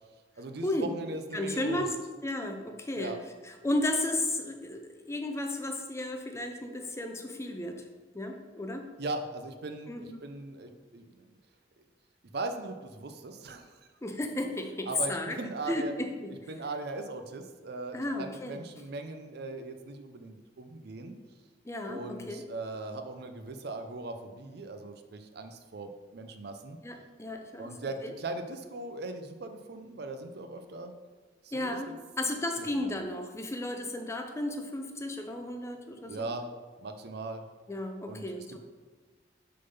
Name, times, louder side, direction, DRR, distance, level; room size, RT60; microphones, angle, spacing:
voice 1, 0.4-1.9 2.9-3.2 9.0-11.4 12.3-13.9 14.9-15.9 16.5-21.2 21.9-26.8 27.6-30.9 31.4-32.0 32.6-32.9 36.1-36.5 36.8-37.4 38.1-38.6, right 2 dB, 65° right, 7 dB, 0.6 m, -39 dB
voice 2, 1.3-1.9 2.2-3.2 3.6-7.8 8.1-8.9 9.9-10.2 14.0-15.4 15.7-16.3 17.9-18.6 21.6-22.4 26.8-27.7 28.0-28.1 31.5-31.9 32.2-36.3 37.7-38.6, left 1 dB, 15° left, 5 dB, 0.6 m, -33 dB
6.5 x 3.9 x 5.4 m, 1.3 s
head